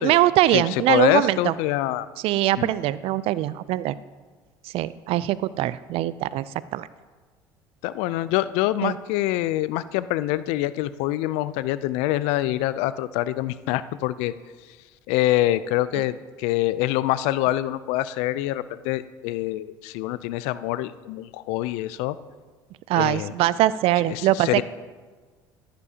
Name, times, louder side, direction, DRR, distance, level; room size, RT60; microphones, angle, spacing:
voice 1, 0.0-1.5 2.2-4.0 4.6-6.5 6.7-6.9 8.8-9.0 15.9-16.0 22.9-24.6, right 15 dB, 60° right, 18 dB, 0.4 m, -22 dB
voice 2, 0.9-2.1 2.6-2.7 7.8-14.3 15.1-22.2 23.0-23.3 24.1-24.6, left 15 dB, 70° left, 16 dB, 0.4 m, -25 dB
13.0 x 11.5 x 2.8 m, 1.4 s
hypercardioid pair, 75°, 11 cm